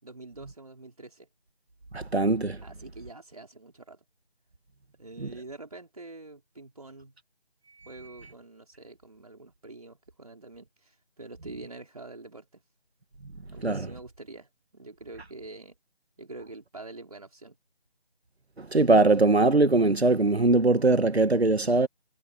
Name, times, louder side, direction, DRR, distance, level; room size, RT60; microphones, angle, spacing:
voice 1, 0.0-1.3 2.6-4.0 5.0-7.1 7.9-12.6 13.5-15.7 16.2-17.6, right 2 dB, 35° right, 4.9 m, -45 dB
voice 2, 1.9-2.6 5.2-5.3 13.6-13.9 18.6-21.9, right 3 dB, 70° right, 2.1 m, -21 dB
figure-of-eight pair, 180°, 33 cm